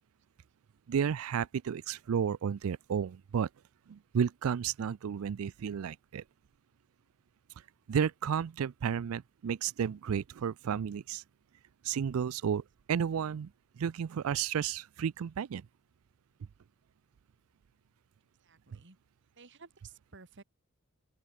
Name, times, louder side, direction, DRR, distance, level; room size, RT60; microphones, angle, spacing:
voice 1, 0.9-3.5 3.9-6.2 7.9-11.2 11.8-12.6 12.9-13.5 13.8-15.7, right 7 dB, 75° right, 0.4 m, -32 dB
voice 2, 18.4-19.0 19.4-20.4, right 4 dB, 60° right, 2.3 m, -54 dB
open air
head